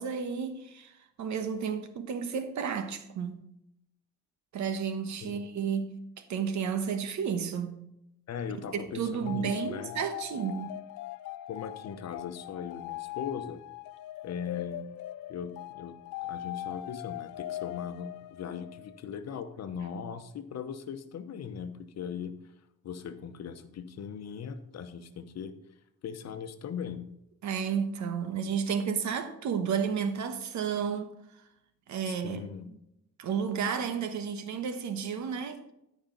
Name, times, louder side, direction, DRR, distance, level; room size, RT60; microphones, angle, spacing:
voice 1, 0.0-3.4 4.5-7.8 8.7-10.7 27.4-31.1 31.9-32.4 32.7-32.8 33.2-35.7, right 7 dB, 70° right, 1.2 m, -32 dB
voice 2, 5.2-5.7 8.3-10.0 11.5-13.6 14.2-14.9 15.3-16.0 16.2-22.3 22.8-25.5 26.0-27.1 32.1-32.7, left 7 dB, 60° left, 0.9 m, -39 dB
sound 1, 9.2-19.0, left 14 dB, 85° left, 0.5 m, -41 dB
13.5 x 5.3 x 3.9 m
cardioid pair, 90°, 30 cm